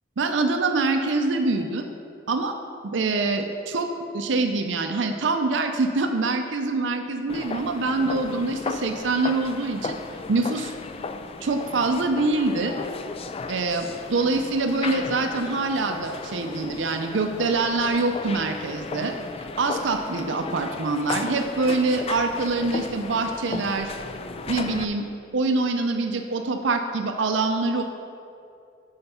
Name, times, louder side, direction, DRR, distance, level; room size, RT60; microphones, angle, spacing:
voice 1, 0.2-1.9 2.3-2.6 2.8-3.9 4.1-10.0 10.3-10.7 11.4-12.8 13.5-19.1 19.6-23.9 24.5-25.1 25.3-27.8, right 3 dB, 80° right, 6 dB, 0.5 m, -25 dB
sound 1, 7.3-24.8, left 4 dB, 30° left, 0.4 m, -35 dB
7.9 x 5.7 x 5.5 m, 2.5 s
head